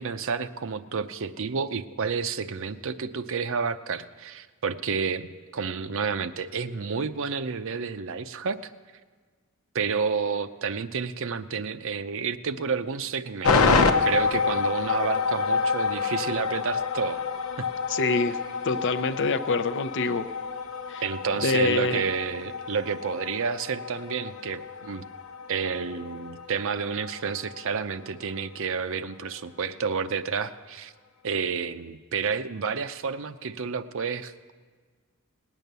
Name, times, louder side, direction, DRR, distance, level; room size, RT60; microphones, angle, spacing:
voice 1, 0.0-8.7 9.7-17.2 17.6-17.7 21.0-25.1 25.5-30.9 31.2-34.5, right 5 dB, 65° right, 11 dB, 0.6 m, -30 dB
sound 1, 13.4-27.8 28.0-28.1, left 4 dB, 85° left, 1.0 m, -28 dB
voice 2, 17.9-18.4 18.6-20.3 20.9-21.0 21.4-22.0, left 3 dB, 55° left, 10 dB, 0.6 m, -25 dB
18.5 x 9.1 x 6.8 m, 1.5 s
head